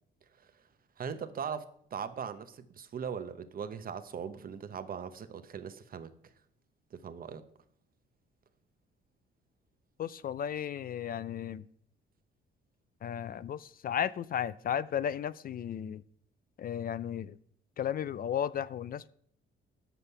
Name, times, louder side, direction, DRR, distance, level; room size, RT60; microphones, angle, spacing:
voice 1, 1.0-6.1 6.9-7.4, right 7 dB, 45° right, 11 dB, 0.8 m, -40 dB
voice 2, 10.0-11.6 13.0-16.0 16.6-17.4 17.8-19.1, left 9 dB, 45° left, 18 dB, 0.4 m, -34 dB
7.9 x 6.9 x 5.5 m, 0.63 s
cardioid pair, 90°, 20 cm